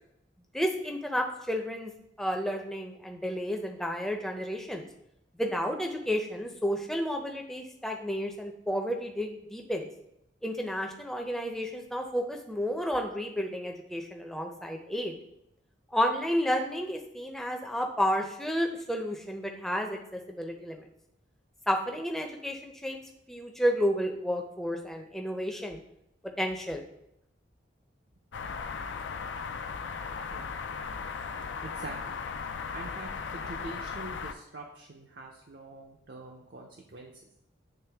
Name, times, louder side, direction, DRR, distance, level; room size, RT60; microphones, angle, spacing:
voice 1, 0.5-1.9 2.2-4.9 5.4-9.9 10.4-15.1 15.9-20.8 21.7-23.0 23.3-25.8 26.2-26.8, equal, ahead, 2 dB, 0.5 m, -31 dB
sound 1, 28.3-34.3, left 5 dB, 80° left, 0.4 m, -37 dB
voice 2, 31.6-32.2 32.7-37.1, right 2 dB, 60° right, 1 dB, 0.6 m, -44 dB
8.7 x 3.1 x 3.4 m, 0.79 s
head